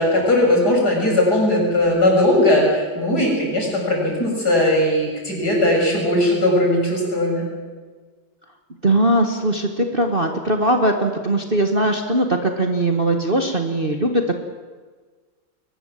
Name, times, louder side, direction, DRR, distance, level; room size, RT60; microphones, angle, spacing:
voice 1, 0.0-7.4, left 1 dB, 55° left, -1 dB, 7.5 m, -18 dB
voice 2, 8.8-14.2, right 1 dB, 30° right, 4 dB, 1.6 m, -20 dB
22.0 x 20.0 x 7.5 m, 1.4 s
omnidirectional pair, 2.1 m